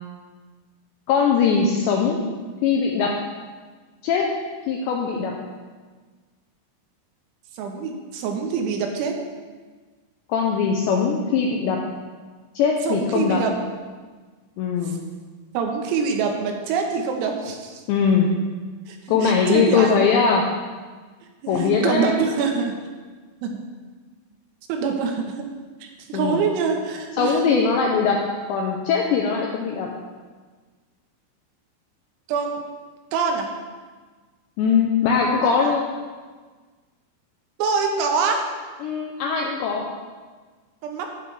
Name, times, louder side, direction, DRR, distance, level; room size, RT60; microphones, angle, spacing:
voice 1, 1.1-2.2 2.6-3.1 4.0-4.3 4.7-5.3 10.3-11.8 12.6-13.4 14.6-15.0 17.9-18.3 19.1-20.4 21.5-22.1 26.1-26.5 27.2-28.2 28.5-29.9 34.6-35.8 38.8-39.9, left 6 dB, 85° left, 0 dB, 2.5 m, -21 dB
voice 2, 7.6-9.1 12.9-13.5 15.6-17.8 18.9-20.0 21.4-22.7 23.4-23.6 24.7-25.2 25.8-27.5 32.3-32.6 33.1-33.5 35.4-35.7 37.6-38.4 40.8-41.1, right 5 dB, 80° right, 3 dB, 3.7 m, -25 dB
11.0 x 9.9 x 3.3 m, 1.4 s
omnidirectional pair, 6.0 m